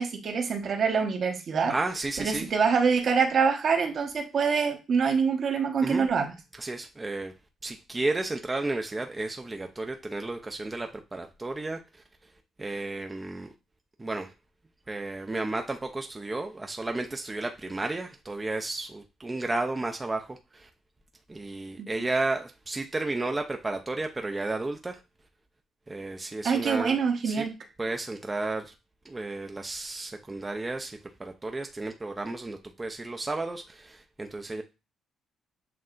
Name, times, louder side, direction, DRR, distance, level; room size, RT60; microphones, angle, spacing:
voice 1, 0.0-1.7 2.2-6.3 21.8-21.9 26.4-27.6, right 5 dB, 55° right, 1.0 m, -25 dB
voice 2, 1.7-2.5 5.8-6.1 6.6-7.3 7.6-11.8 12.6-13.5 14.0-14.3 14.9-20.7 21.3-25.0 25.9-27.0 27.2-27.4 27.8-28.7 29.0-34.6, right 2 dB, 20° right, 0.5 m, -33 dB
7.6 x 2.7 x 2.5 m
cardioid pair, 90°, 0 cm